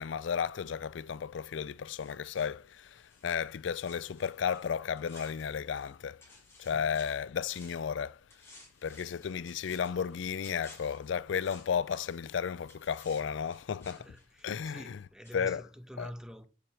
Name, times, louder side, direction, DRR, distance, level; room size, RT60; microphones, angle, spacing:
voice 1, 0.0-6.2 6.6-8.2 8.8-14.1 14.4-15.0 15.3-15.6 16.0-16.1, left 7 dB, 70° left, 0.4 m, -33 dB
sound 1, 1.9-5.9 6.2-7.9 8.3-12.3 12.7-15.0 15.2-15.4, left 2 dB, 15° left, 5.3 m, -57 dB
voice 2, 13.9-16.5, equal, 5° right, 1.2 m, -47 dB
7.9 x 7.2 x 6.2 m
head